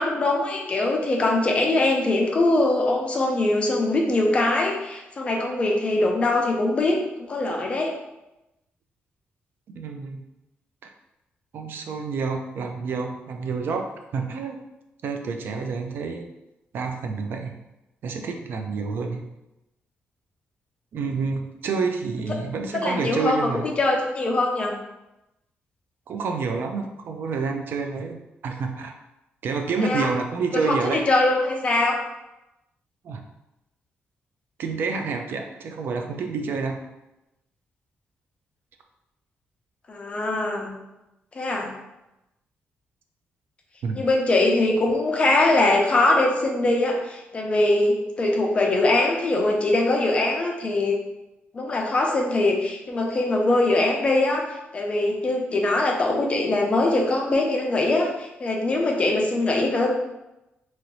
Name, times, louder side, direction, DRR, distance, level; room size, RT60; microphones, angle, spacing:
voice 1, 0.0-7.9 22.8-24.8 29.8-30.1 30.5-31.9 39.9-40.7 41.3-41.7 43.9-51.0 51.5-54.5 54.7-59.9, left 2 dB, 30° left, 0 dB, 0.5 m, -22 dB
voice 2, 9.7-10.2 10.8-10.9 11.5-13.9 14.1-14.6 15.0-16.3 16.7-17.6 18.0-19.2 20.9-23.7 26.1-28.9 29.4-31.0 33.0-33.2 34.6-36.8 43.8-44.0, right 4 dB, 60° right, 4 dB, 0.3 m, -28 dB
2.9 x 2.6 x 3.0 m, 0.94 s
cardioid pair, 145°, 4 cm